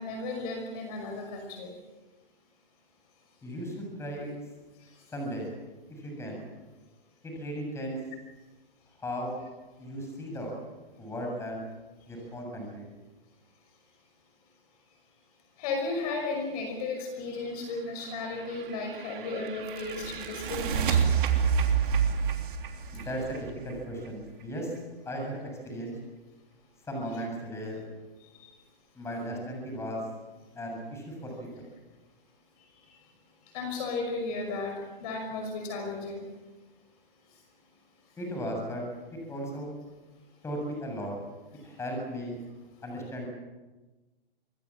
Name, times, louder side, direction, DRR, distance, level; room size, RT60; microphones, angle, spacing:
voice 1, 0.0-1.7 15.6-21.1 22.9-23.0 33.5-36.3, left 3 dB, 40° left, 4 dB, 5.7 m, -34 dB
voice 2, 3.4-4.3 5.1-5.5 6.0-6.4 7.2-8.0 9.0-9.3 9.8-10.5 11.0-11.6 12.1-12.9 22.9-24.7 25.1-25.4 25.6-26.0 26.9-27.8 29.0-30.0 30.5-31.6 38.2-38.8 39.2-39.7 40.4-41.1 41.6-42.4 42.8-43.3, equal, 10° left, 1 dB, 7.2 m, -36 dB
sound 1, 18.3-24.1, right 7 dB, 55° right, 3.4 m, -28 dB
25.5 x 20.5 x 7.4 m, 1.2 s
hypercardioid pair, 145°, 30 cm